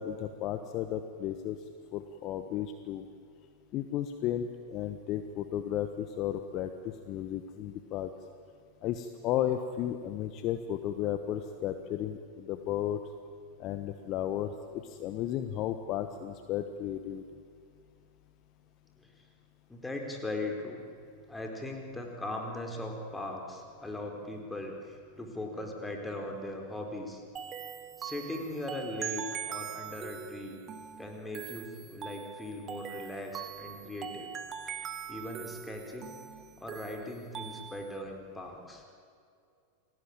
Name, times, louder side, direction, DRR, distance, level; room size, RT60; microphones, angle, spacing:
voice 1, 0.0-1.6 1.9-3.0 3.7-8.1 8.8-13.0 13.6-17.2, left 11 dB, 40° left, 8 dB, 1.3 m, -34 dB
voice 2, 19.7-20.8 21.3-27.2 28.0-30.6 31.0-34.3 34.7-36.2 36.6-38.8, left 1 dB, 10° left, 2 dB, 4.6 m, -39 dB
sound 1, 27.4-38.0, right 8 dB, 25° right, 1.3 m, -42 dB
29.0 x 20.5 x 9.0 m, 2.3 s
figure-of-eight pair, 90°, 0 cm